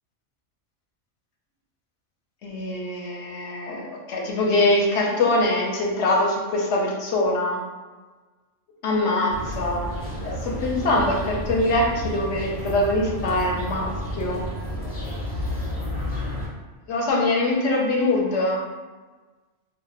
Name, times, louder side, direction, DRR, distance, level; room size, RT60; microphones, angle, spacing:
voice 1, 2.4-7.6 8.8-9.9 10.2-14.4 16.9-18.6, left 2 dB, 70° left, -1 dB, 0.8 m, -23 dB
sound 1, 9.3-16.5, equal, 35° left, 0.7 m, -31 dB
2.3 x 2.1 x 3.9 m, 1.3 s
omnidirectional pair, 1.3 m